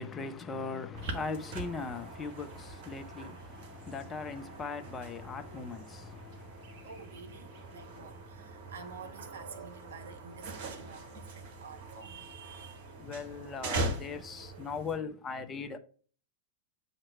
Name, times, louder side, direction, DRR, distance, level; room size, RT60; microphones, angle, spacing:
voice 1, 0.0-6.9 7.7-7.8 13.0-15.8, left 4 dB, 20° left, 0.6 m, -39 dB
sound 1, 0.9-15.0, right 2 dB, 50° right, 1.2 m, -42 dB
voice 2, 6.8-12.9, right 5 dB, 65° right, 0.7 m, -49 dB
7.5 x 2.9 x 4.4 m
figure-of-eight pair, 90°, 0 cm